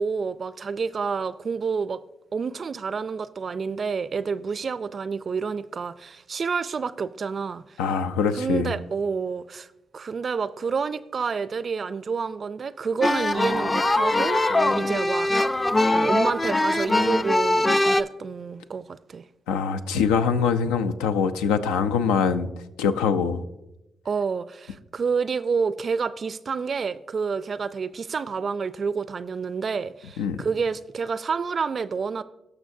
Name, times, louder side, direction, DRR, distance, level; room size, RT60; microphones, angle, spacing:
voice 1, 0.0-2.0 2.3-7.8 8.3-19.2 24.1-32.2, right 5 dB, 50° right, 0.3 m, -29 dB
voice 2, 7.8-8.7 19.5-22.5 22.8-23.4 30.2-30.4, left 6 dB, 85° left, 0.4 m, -23 dB
sound 1, 13.0-18.0, left 2 dB, 30° left, 0.5 m, -22 dB
18.0 x 6.0 x 2.6 m
hypercardioid pair, 45°, 0 cm